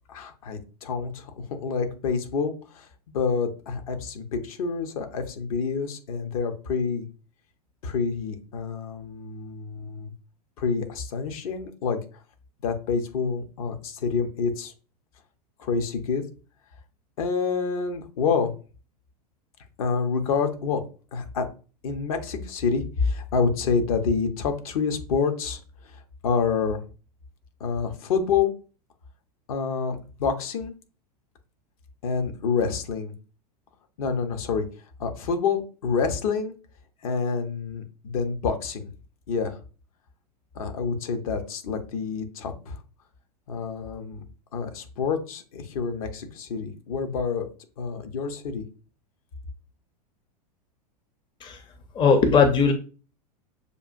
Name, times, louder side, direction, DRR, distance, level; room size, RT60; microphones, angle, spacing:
voice 1, 0.1-7.1 7.8-10.1 10.6-12.0 12.6-14.7 15.6-16.2 17.2-18.5 19.8-20.8 21.1-21.5 21.8-25.6 25.8-26.8 27.6-28.5 29.5-30.7 32.0-33.1 34.0-34.6 35.0-36.5 37.0-38.9 39.3-39.6 40.5-42.8 43.5-44.2 44.5-47.5 47.8-48.6, left 5 dB, 55° left, 6 dB, 0.9 m, -27 dB
voice 2, 51.9-52.7, left 5 dB, 20° left, 7 dB, 0.6 m, -19 dB
6.8 x 2.4 x 2.5 m, 0.35 s
figure-of-eight pair, 90°, 21 cm